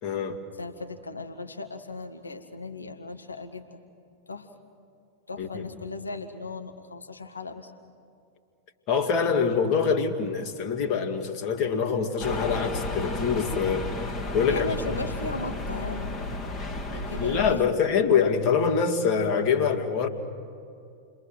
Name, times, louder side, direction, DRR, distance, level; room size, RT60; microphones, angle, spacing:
voice 1, 0.0-0.4 5.4-5.6 8.9-14.1 14.3-14.7 16.9-20.1, left 6 dB, 40° left, 2.3 m, -25 dB
voice 2, 0.6-3.8 4.3-4.5 5.3-7.7 14.5-16.6 16.9-17.8, left 3 dB, 80° left, 1.4 m, -37 dB
sound 1, 12.2-17.5, left 2 dB, 25° left, 1.9 m, -32 dB
29.5 x 22.0 x 7.6 m
figure-of-eight pair, 90°, 0 cm